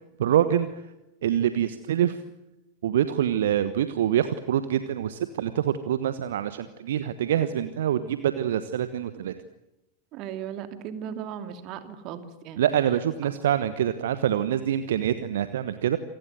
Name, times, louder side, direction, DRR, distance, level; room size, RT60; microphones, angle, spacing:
voice 1, 0.2-0.8 1.2-2.2 2.8-9.3 12.6-16.0, right 10 dB, 60° right, 12 dB, 1.2 m, -25 dB
voice 2, 10.1-12.6, right 9 dB, 40° right, 9 dB, 2.7 m, -37 dB
27.5 x 19.0 x 9.3 m, 0.94 s
figure-of-eight pair, 90°, 0 cm